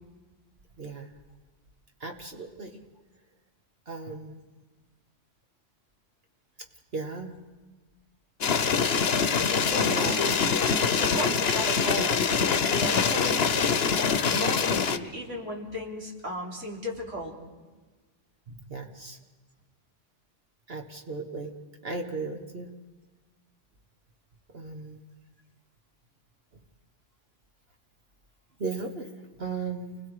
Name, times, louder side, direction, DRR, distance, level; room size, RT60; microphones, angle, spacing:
voice 1, 0.8-1.1 2.0-2.8 3.9-4.4 6.9-7.3 9.8-10.2 18.5-19.2 20.7-21.5 21.8-22.7 24.5-25.0 28.6-29.1 29.4-30.0, right 3 dB, 55° right, 3 dB, 1.5 m, -36 dB
sound 1, 8.4-15.0, left 6 dB, 60° left, 1.1 m, -24 dB
voice 2, 9.2-10.4 10.9-17.3, equal, 85° right, -1 dB, 3.9 m, -35 dB
29.5 x 21.0 x 4.9 m, 1.3 s
omnidirectional pair, 1.2 m